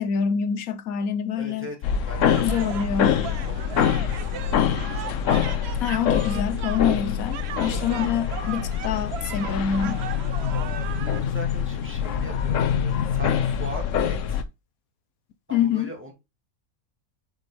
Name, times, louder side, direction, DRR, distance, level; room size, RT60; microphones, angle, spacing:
voice 1, 0.0-1.7 2.2-3.2 5.8-10.0 15.5-15.9, left 7 dB, 85° left, 1.2 m, -26 dB
voice 2, 1.3-2.8 3.5-4.5 10.9-14.4 15.5-16.1, equal, 10° right, 2.5 m, -40 dB
sound 1, 1.8-14.4, left 8 dB, 65° left, 1.1 m, -25 dB
sound 2, 2.3-11.2, right 11 dB, 65° right, 0.7 m, -37 dB
8.2 x 5.4 x 3.4 m
omnidirectional pair, 1.5 m